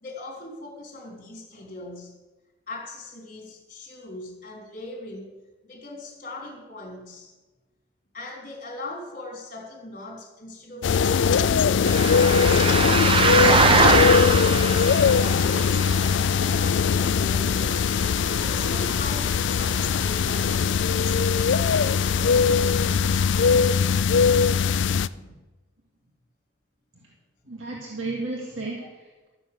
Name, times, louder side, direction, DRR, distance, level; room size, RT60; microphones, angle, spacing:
voice 1, 0.0-2.2 2.7-5.4 5.6-7.3 8.1-12.3 15.1-18.0 18.4-23.0 25.2-25.3 28.6-28.9, left 2 dB, 40° left, 1 dB, 3.6 m, -40 dB
sound 1, 10.8-25.1, left 6 dB, 65° left, 0.4 m, -21 dB
sound 2, 11.8-23.7, right 3 dB, 25° right, 0.6 m, -26 dB
voice 2, 27.4-29.3, right 2 dB, 85° right, -2 dB, 2.2 m, -33 dB
13.5 x 9.8 x 6.9 m, 1.2 s
head